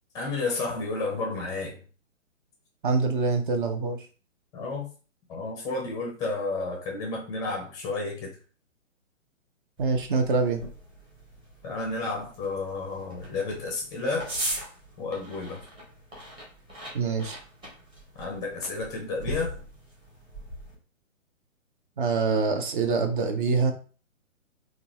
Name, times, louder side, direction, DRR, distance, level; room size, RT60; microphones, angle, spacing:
voice 1, 0.1-1.8 4.5-4.9 5.3-8.3 11.6-14.3 15.0-15.6 18.2-19.6, left 3 dB, 10° left, 0 dB, 0.6 m, -31 dB
voice 2, 2.8-4.0 9.8-10.6 16.9-17.4 22.0-23.7, right 4 dB, 40° right, 6 dB, 0.6 m, -25 dB
sound 1, 9.8-20.7, equal, 10° right, 1.0 m, -40 dB
3.7 x 2.3 x 2.9 m, 0.37 s
figure-of-eight pair, 130°, 39 cm